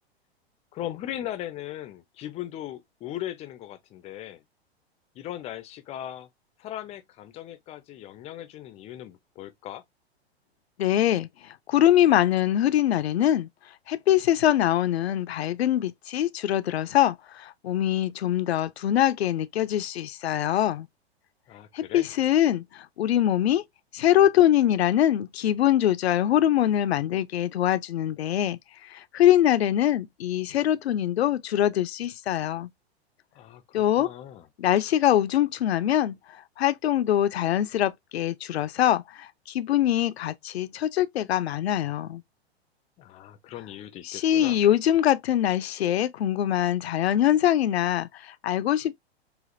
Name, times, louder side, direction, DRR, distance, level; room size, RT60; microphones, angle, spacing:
voice 1, 0.7-4.4 5.2-6.3 6.6-9.8 21.5-22.1 33.3-34.5 43.0-44.6, left 12 dB, 20° left, 0.5 m, -38 dB
voice 2, 10.8-11.3 11.7-13.5 13.9-20.9 21.7-23.6 23.9-28.6 28.9-32.7 33.7-34.1 34.6-36.2 36.6-42.2 44.1-49.0, left 11 dB, 75° left, 0.5 m, -23 dB
5.0 x 2.5 x 2.4 m
hypercardioid pair, 110°, 32 cm